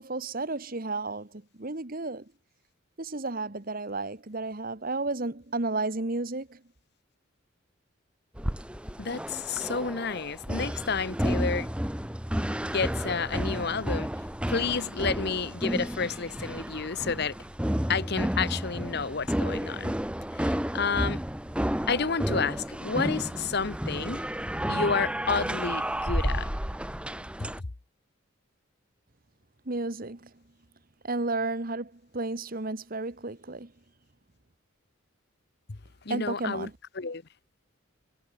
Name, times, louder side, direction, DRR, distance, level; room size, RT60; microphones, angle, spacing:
voice 1, 0.0-2.3 3.0-6.6 29.6-30.4 31.0-33.7 36.1-36.7, right 2 dB, 45° right, 1.5 m, -32 dB
sound 1, 8.4-27.6, equal, 5° right, 1.1 m, -31 dB
voice 2, 9.0-11.7 12.6-14.1 14.5-17.4 17.9-19.9 20.3-21.2 21.9-24.2 24.7-26.5 27.4-27.5 35.7-35.8 36.0-36.7 37.0-37.2, left 5 dB, 50° left, 1.0 m, -30 dB
head